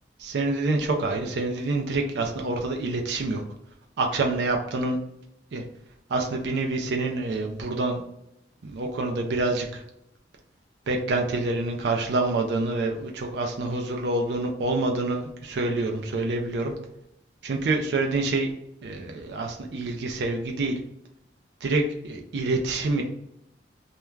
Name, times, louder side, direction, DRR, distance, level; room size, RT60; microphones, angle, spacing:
voice 1, 0.2-3.4 4.0-5.0 5.5-5.6 6.1-8.0 8.6-9.8 10.9-16.7 17.4-18.5 18.8-20.8 21.6-23.0, right 2 dB, 75° right, 2 dB, 0.4 m, -27 dB
2.3 x 2.1 x 3.1 m, 0.78 s
head